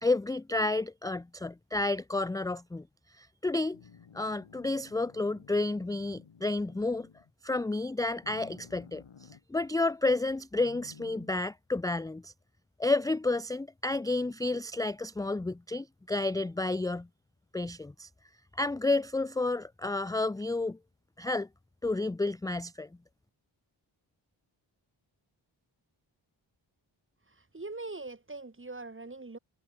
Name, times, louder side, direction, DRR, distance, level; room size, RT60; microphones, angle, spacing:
voice 1, 0.0-2.8 3.2-3.8 4.1-7.1 7.4-9.0 9.5-12.3 12.8-17.1 17.5-18.1 18.6-20.8 21.2-21.5 21.8-22.9, left 2 dB, 10° left, 0.4 m, -30 dB
sound 1, 3.7-7.3 8.2-9.4 10.6-11.3, left 7 dB, 90° left, 3.8 m, -54 dB
voice 2, 27.3-29.4, right 3 dB, 25° right, 1.9 m, -42 dB
cardioid pair, 45°, 47 cm